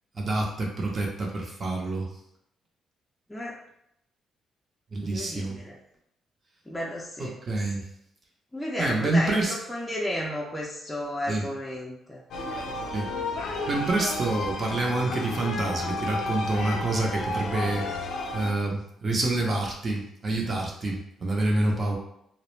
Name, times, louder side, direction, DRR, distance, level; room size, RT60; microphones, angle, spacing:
voice 1, 0.1-2.1 4.9-5.6 7.2-7.8 8.8-9.6 11.3-11.4 12.9-13.1 13.7-17.9 18.3-22.0, right 2 dB, 40° right, -1 dB, 0.6 m, -27 dB
voice 2, 5.0-5.8 6.7-7.4 8.5-12.2, left 1 dB, 10° left, -4 dB, 0.4 m, -33 dB
sound 1, 12.3-18.5, left 2 dB, 75° left, 0.4 m, -32 dB
2.3 x 2.0 x 3.1 m, 0.77 s
cardioid pair, 90°, 0 cm